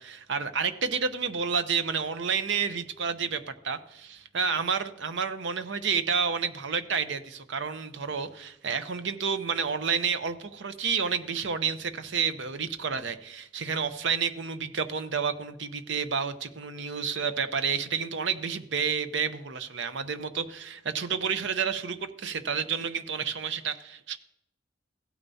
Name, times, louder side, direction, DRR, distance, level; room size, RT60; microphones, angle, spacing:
voice 1, 0.0-24.2, right 6 dB, 70° right, 11 dB, 0.7 m, -30 dB
16.0 x 9.0 x 2.7 m, 0.80 s
head